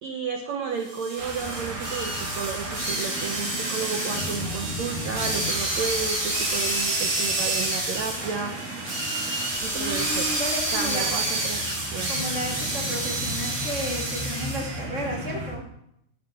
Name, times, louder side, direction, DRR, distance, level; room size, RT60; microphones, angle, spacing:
voice 1, 0.0-8.6 9.6-10.3 10.7-12.1, right 6 dB, 85° right, 4 dB, 1.5 m, -32 dB
sound 1, 0.9-14.8, right 1 dB, 25° right, 3.5 m, -29 dB
sound 2, 1.2-15.5, right 1 dB, 55° right, 4.1 m, -35 dB
voice 2, 9.7-11.4 12.1-15.7, equal, 75° left, -3 dB, 0.7 m, -33 dB
13.5 x 8.4 x 5.1 m, 0.75 s
omnidirectional pair, 4.5 m